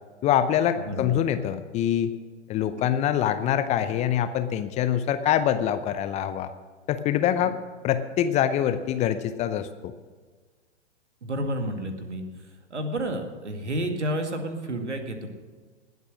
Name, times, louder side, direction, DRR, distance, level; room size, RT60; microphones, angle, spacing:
voice 1, 0.2-2.1 2.5-6.5 6.9-7.5 7.8-9.9, left 10 dB, 20° left, 11 dB, 0.6 m, -24 dB
voice 2, 0.9-1.2 3.8-3.9 7.4-7.5 11.2-12.2 12.7-15.3, right 1 dB, 80° right, 6 dB, 2.1 m, -30 dB
20.0 x 8.1 x 6.3 m, 1.4 s
figure-of-eight pair, 115°, 34 cm